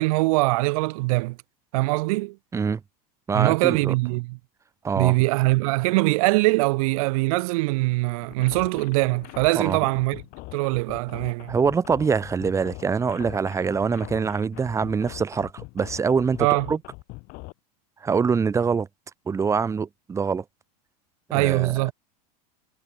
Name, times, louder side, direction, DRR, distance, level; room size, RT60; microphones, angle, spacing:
voice 1, 0.0-1.4 1.7-2.4 3.3-4.4 5.0-10.2 10.5-11.6 16.4-16.7 21.3-21.9, right 24 dB, 60° right, 2.4 m, -22 dB
voice 2, 3.3-3.9 4.8-5.2 9.5-9.8 11.5-16.8 18.0-18.9 19.3-20.4 21.3-21.9, right 5 dB, 15° right, 3.5 m, -24 dB
sound 1, 8.2-17.5, left 26 dB, 45° left, 4.2 m, -41 dB
supercardioid pair, 150°, 20 cm